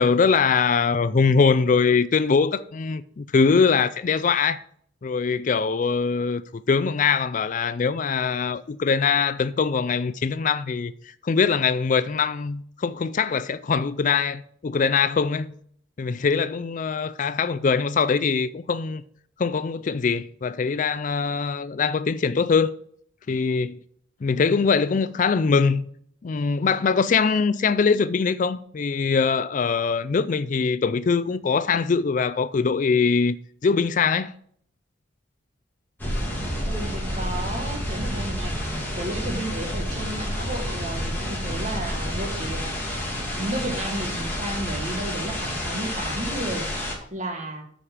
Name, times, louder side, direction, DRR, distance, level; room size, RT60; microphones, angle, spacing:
voice 1, 0.0-4.6 5.0-10.9 11.2-15.5 16.0-19.0 19.4-22.7 23.3-23.8 24.2-25.9 26.2-33.4 33.6-34.3 40.4-40.5, left 5 dB, 40° left, 0.4 m, -22 dB
sound 1, 36.0-46.9, equal, 10° left, 2.6 m, -29 dB
voice 2, 36.7-42.7 43.3-46.7 47.1-47.6, right 1 dB, 40° right, 1.7 m, -33 dB
9.1 x 5.0 x 7.2 m
head